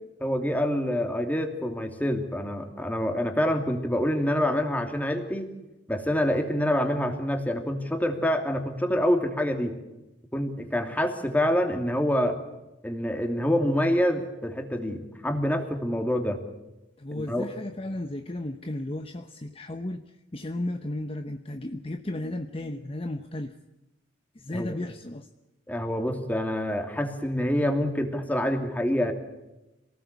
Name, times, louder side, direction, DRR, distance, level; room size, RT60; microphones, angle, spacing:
voice 1, 0.2-5.5 5.9-9.8 10.3-12.4 12.8-16.4 17.1-17.5 24.5-24.8 25.7-29.1, equal, 10° left, 5 dB, 2.8 m, -26 dB
voice 2, 17.0-20.0 20.3-23.5 24.3-25.3, left 1 dB, 30° left, 7 dB, 1.0 m, -34 dB
27.0 x 19.0 x 8.3 m, 0.99 s
head